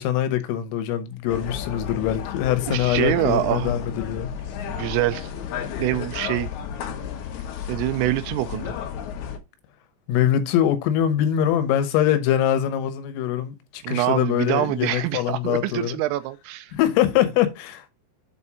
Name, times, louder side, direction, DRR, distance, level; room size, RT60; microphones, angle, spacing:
voice 1, 0.0-4.3 10.1-16.0 16.7-17.9, left 11 dB, 85° left, 3.7 m, -23 dB
sound 1, 1.3-9.4, left 8 dB, 70° left, 2.7 m, -32 dB
voice 2, 2.7-3.8 4.7-5.3 5.8-6.5 7.7-8.7 13.8-16.7, right 16 dB, 85° right, 3.3 m, -25 dB
7.8 x 4.2 x 4.8 m
omnidirectional pair, 5.8 m